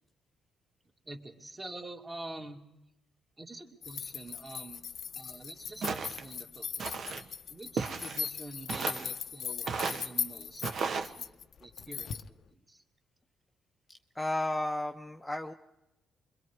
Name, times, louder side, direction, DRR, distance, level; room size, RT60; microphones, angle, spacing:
voice 1, 1.0-2.6 3.4-4.8 5.1-7.1 7.5-12.8, right 2 dB, 20° right, 3 dB, 2.5 m, -47 dB
sound 1, 3.8-12.3, left 7 dB, 60° left, 0.7 m, -39 dB
Walk footsteps, 5.8-6.3 6.8-7.2 7.8-8.3 8.7-9.1 9.7-10.1 10.6-11.1, right 5 dB, 55° right, 1.3 m, -34 dB
voice 2, 14.1-15.5, left 1 dB, 10° left, 4 dB, 0.9 m, -33 dB
25.5 x 22.5 x 4.8 m, 0.93 s
cardioid pair, 90°, 0 cm